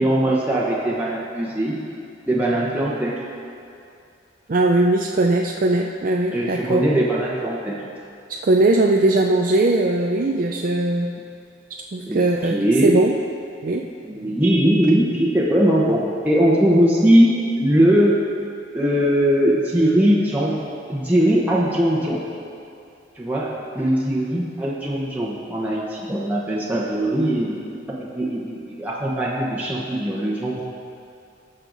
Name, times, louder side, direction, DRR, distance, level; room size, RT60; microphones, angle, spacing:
voice 1, 0.0-1.8 2.3-3.2 6.3-7.8 12.0-13.0 14.0-18.2 18.7-20.5 20.9-22.2 23.2-30.6, right 1 dB, 10° right, -6 dB, 1.0 m, -20 dB
voice 2, 4.5-6.8 8.3-11.1 11.9-13.1 13.6-13.9, right 2 dB, 45° right, 1 dB, 0.5 m, -19 dB
16.5 x 6.5 x 4.0 m, 2.6 s
head